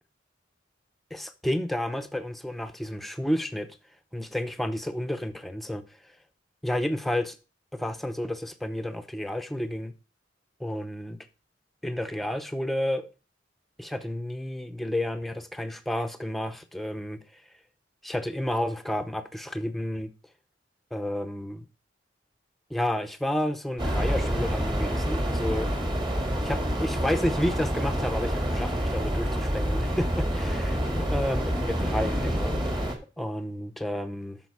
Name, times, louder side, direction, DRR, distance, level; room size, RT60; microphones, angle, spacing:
voice 1, 1.1-3.8 4.1-5.8 6.6-7.4 7.7-9.9 10.6-11.2 11.8-13.1 13.8-17.4 18.0-20.1 20.9-21.6 22.7-25.7 26.4-32.9 33.2-34.4, left 1 dB, ahead, 0.6 m, -31 dB
sound 1, 23.8-33.0, equal, 25° right, 1.7 m, -27 dB
8.5 x 6.2 x 4.7 m
head